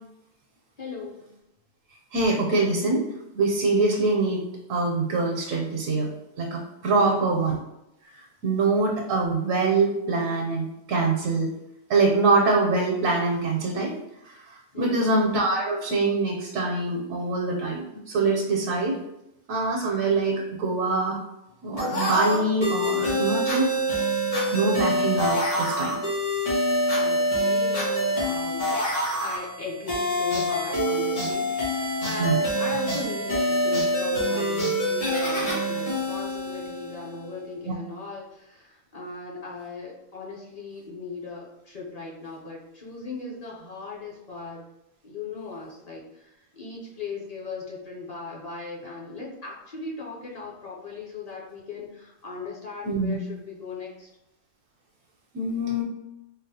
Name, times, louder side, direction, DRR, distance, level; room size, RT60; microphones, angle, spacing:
voice 1, 0.8-1.3 6.9-7.3 14.7-15.1 26.9-44.6 45.0-54.1, left 4 dB, 45° left, -4 dB, 0.5 m, -38 dB
voice 2, 2.1-3.0 3.3-4.4 4.7-6.1 6.4-7.6 8.4-11.5 11.9-13.9 14.2-14.4 14.8-19.0 19.5-21.2 21.6-23.7 24.5-26.0 32.2-32.4 52.9-53.2 55.3-55.8, right 3 dB, 80° right, -1 dB, 1.0 m, -24 dB
sound 1, 21.8-37.3, equal, 75° left, 1.9 m, -26 dB
4.0 x 2.1 x 2.7 m, 0.88 s
omnidirectional pair, 1.3 m